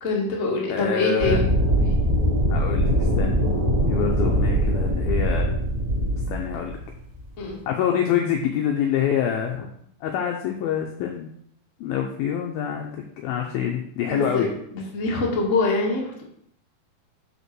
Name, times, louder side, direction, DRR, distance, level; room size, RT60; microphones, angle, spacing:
voice 1, 0.0-1.5 7.4-7.6 14.1-14.5 14.9-16.2, left 3 dB, 55° left, -3 dB, 0.8 m, -24 dB
voice 2, 0.7-1.4 1.8-2.0 2.5-3.4 3.9-5.6 6.3-6.8 7.7-9.7 10.0-11.3 11.8-14.5, left 9 dB, 85° left, 2 dB, 2.1 m, -26 dB
sound 1, 1.2-7.5, equal, 50° right, 1.5 m, -22 dB
6.6 x 5.5 x 6.1 m, 0.70 s
omnidirectional pair, 5.1 m